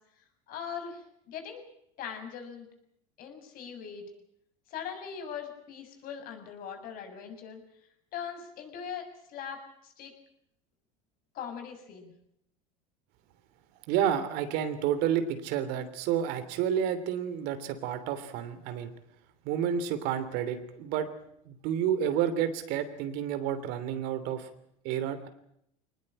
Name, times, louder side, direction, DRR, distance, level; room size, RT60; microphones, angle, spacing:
voice 1, 0.5-1.6 2.0-2.7 3.2-4.1 4.7-7.6 8.1-10.1 11.3-12.1, left 7 dB, 55° left, 5 dB, 7.0 m, -40 dB
voice 2, 13.9-18.9 19.4-21.1 21.5-24.5 24.8-25.3, right 9 dB, 60° right, 11 dB, 3.1 m, -30 dB
23.0 x 19.5 x 8.9 m, 0.75 s
hypercardioid pair, 90°, 18 cm